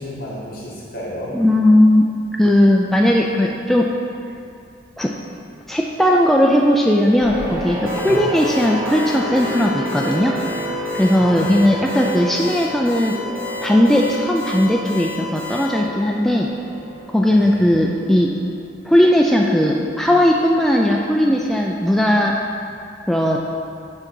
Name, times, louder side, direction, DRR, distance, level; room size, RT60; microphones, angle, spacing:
voice 1, 0.0-1.4 8.0-8.3 11.2-11.6 17.3-17.8, equal, 55° left, -6 dB, 1.8 m, -32 dB
voice 2, 1.3-2.1 2.4-3.9 5.0-5.1 5.7-10.4 10.9-13.2 13.6-16.5 17.1-18.3 18.8-22.3 23.1-23.4, left 1 dB, ahead, -1 dB, 0.3 m, -17 dB
sound 1, 7.2-18.5, equal, 20° right, 1.6 m, -30 dB
Alarm, 7.9-15.7, left 3 dB, 50° right, 1.4 m, -33 dB
7.3 x 3.8 x 6.1 m, 2.4 s
head